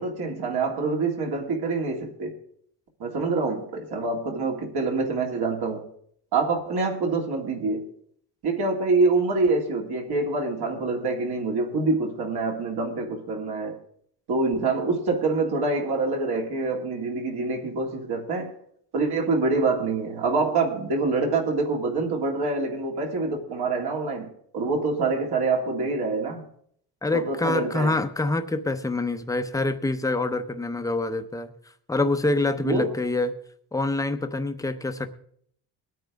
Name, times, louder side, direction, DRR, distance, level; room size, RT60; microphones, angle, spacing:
voice 1, 0.0-2.3 3.0-5.8 6.3-7.9 8.4-13.8 14.3-18.5 18.9-26.5 27.1-27.9 32.6-32.9, right 3 dB, 65° right, 2.2 m, -26 dB
voice 2, 27.0-31.5 31.9-33.3 33.7-35.1, left 2 dB, 10° left, 0.7 m, -26 dB
22.0 x 9.1 x 3.5 m
cardioid pair, 135°, 42 cm